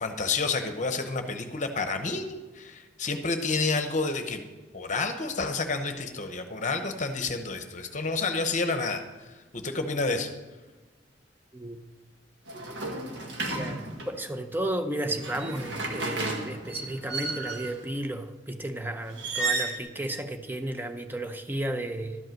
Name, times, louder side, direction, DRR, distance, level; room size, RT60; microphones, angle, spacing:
voice 1, 0.0-4.4 4.7-9.3 9.5-10.3, left 3 dB, 40° left, 7 dB, 0.9 m, -29 dB
sound 1, 12.5-14.2 15.0-17.8 19.1-19.8, right 3 dB, 70° right, 1.5 m, -33 dB
voice 2, 13.5-22.2, right 1 dB, 10° right, 7 dB, 0.7 m, -33 dB
12.5 x 5.4 x 7.6 m, 1.3 s
head